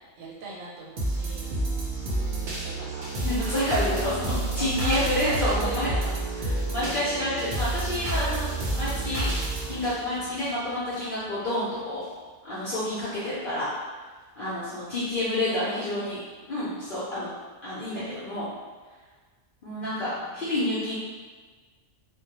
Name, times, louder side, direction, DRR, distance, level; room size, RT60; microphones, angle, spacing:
voice 1, 0.2-1.5 2.3-3.1 4.3-6.1 10.1-10.4 15.5-15.8 19.7-21.0, right 3 dB, 90° right, -4 dB, 1.0 m, -38 dB
sound 1, 1.0-11.0 11.5-11.6, right 2 dB, 65° right, 0.4 m, -29 dB
voice 2, 3.2-5.9 6.3-8.5 8.8-9.3 9.7-12.0 12.4-13.7 14.4-16.2 16.5-17.3 17.6-18.5 19.6-21.0, left 1 dB, 55° left, -10 dB, 0.6 m, -29 dB
2.1 x 2.1 x 2.8 m, 1.4 s
omnidirectional pair, 1.4 m